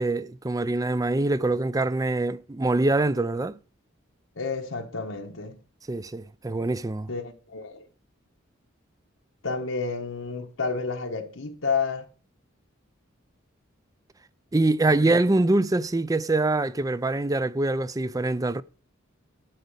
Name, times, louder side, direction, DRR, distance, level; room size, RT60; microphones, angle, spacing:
voice 1, 0.0-3.6 5.9-7.1 14.5-18.6, right 2 dB, 20° right, 0.4 m, -24 dB
voice 2, 4.4-5.6 7.1-7.8 9.4-12.0 15.0-15.2, left 4 dB, 85° left, 1.4 m, -30 dB
12.0 x 5.1 x 8.2 m
head